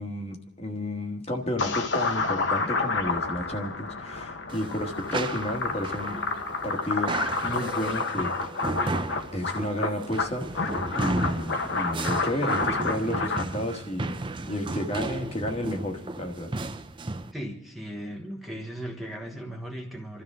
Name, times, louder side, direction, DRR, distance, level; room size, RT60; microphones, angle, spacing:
voice 1, 0.0-6.2 6.6-7.2 7.4-8.3 9.3-14.2 14.5-16.5, left 1 dB, 30° left, 2 dB, 1.5 m, -32 dB
sound 1, 1.6-13.4, left 3 dB, 60° left, 1.2 m, -29 dB
sound 2, 4.5-17.3, right 2 dB, 25° right, 0.5 m, -34 dB
voice 2, 17.3-20.2, equal, ahead, 0 dB, 1.2 m, -37 dB
28.5 x 13.0 x 3.6 m, 0.90 s
head